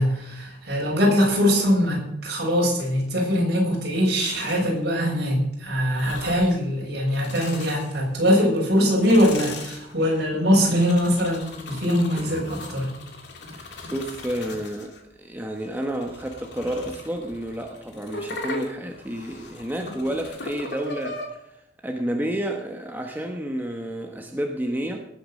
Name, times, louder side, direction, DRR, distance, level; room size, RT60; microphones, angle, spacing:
voice 1, 0.0-12.9, equal, 60° right, -1 dB, 6.6 m, -22 dB
sound 1, 4.2-4.8 5.8-6.6 7.0-8.3 8.8-15.0 15.6-21.3, left 2 dB, 65° left, 2.8 m, -38 dB
voice 2, 13.6-21.2 21.8-25.0, right 1 dB, 10° right, 2 dB, 1.1 m, -30 dB
18.5 x 8.5 x 6.5 m, 0.80 s
head